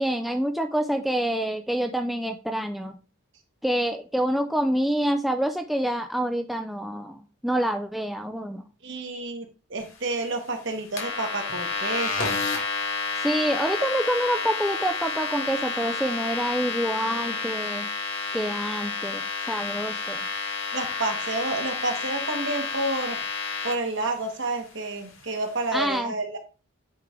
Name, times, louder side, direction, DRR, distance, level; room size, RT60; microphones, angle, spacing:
voice 1, 0.0-3.0 3.6-8.6 13.2-17.9 18.3-20.2 25.7-26.2, right 1 dB, ahead, 4 dB, 0.3 m, -27 dB
voice 2, 8.8-12.4 20.7-23.2 23.6-26.4, right 2 dB, 55° right, 4 dB, 1.3 m, -30 dB
sound 1, 11.0-23.7, left 4 dB, 65° left, 1.9 m, -30 dB
9.0 x 3.3 x 3.6 m, 0.34 s
head